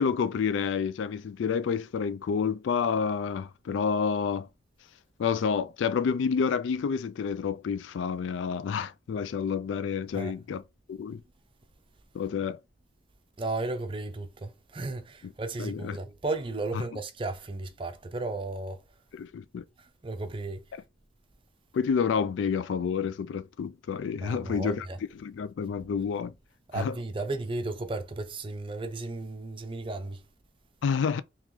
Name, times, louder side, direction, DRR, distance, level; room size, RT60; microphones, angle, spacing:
voice 1, 0.0-4.5 5.2-10.6 10.9-11.2 12.1-12.6 15.6-16.0 19.1-19.6 21.7-24.9 25.1-26.3 26.7-27.0 30.8-31.2, left 6 dB, 75° left, 0.3 m, -29 dB
voice 2, 13.4-18.8 19.8-20.6 24.2-25.0 26.7-30.2, right 2 dB, 25° right, 0.5 m, -34 dB
3.0 x 2.9 x 3.6 m
head